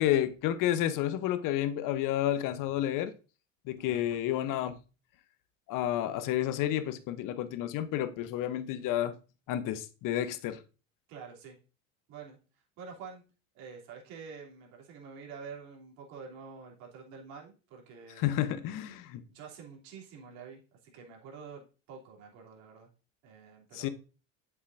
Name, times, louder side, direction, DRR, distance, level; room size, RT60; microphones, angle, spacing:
voice 1, 0.0-3.1 3.7-4.8 5.7-9.1 9.5-10.6 18.2-19.2 23.7-23.9, left 12 dB, 55° left, 1.0 m, -30 dB
voice 2, 11.1-11.6 12.1-12.4 12.8-13.2 13.5-18.5 19.3-22.9 23.2-23.9, right 5 dB, 65° right, 3.2 m, -48 dB
8.3 x 7.2 x 2.6 m
hypercardioid pair, 80°, 39 cm